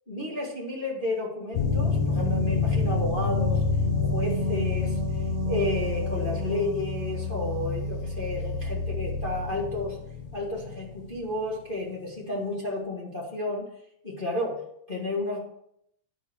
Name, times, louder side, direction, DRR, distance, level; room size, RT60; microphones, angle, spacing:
voice 1, 0.1-3.6 4.0-10.0 10.3-13.6 14.0-15.4, left 2 dB, 25° left, -4 dB, 1.0 m, -32 dB
sound 1, 1.5-11.2, left 3 dB, 75° left, 3.0 m, -28 dB
10.0 x 7.2 x 4.6 m, 0.72 s
omnidirectional pair, 4.0 m